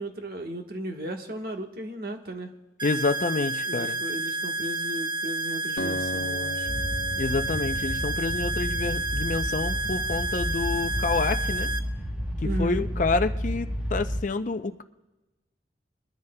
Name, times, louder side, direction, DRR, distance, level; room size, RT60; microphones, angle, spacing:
voice 1, 0.0-2.5 3.6-6.7 12.4-12.9, right 1 dB, 55° right, 3 dB, 1.3 m, -35 dB
voice 2, 2.8-4.0 7.2-11.7 12.4-14.8, left 3 dB, 45° left, 9 dB, 0.5 m, -28 dB
sound 1, 2.8-11.8, right 2 dB, 25° right, 0.5 m, -30 dB
Acoustic guitar, 5.8-9.3, left 1 dB, 85° left, 0.8 m, -37 dB
sound 2, 6.7-14.2, equal, 5° right, 1.1 m, -31 dB
23.0 x 13.0 x 2.2 m, 1.1 s
head